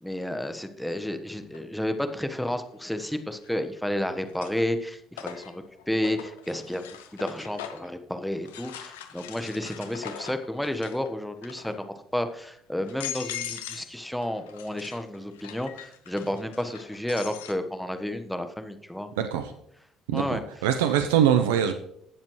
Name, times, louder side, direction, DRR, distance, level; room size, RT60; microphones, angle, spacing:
voice 1, 0.0-6.8 7.1-19.1 20.1-20.4, left 1 dB, 5° left, 8 dB, 1.2 m, -31 dB
sound 1, 1.5-1.6 3.3-3.8 4.2-8.0 8.5-11.1 11.4-11.9 12.4-12.5 12.8-13.9 14.2-17.6, left 9 dB, 80° left, 0.8 m, -41 dB
voice 2, 19.2-19.5 20.1-21.7, right 9 dB, 80° right, 8 dB, 0.6 m, -23 dB
17.0 x 7.3 x 3.1 m, 0.72 s
hypercardioid pair, 60°, 0 cm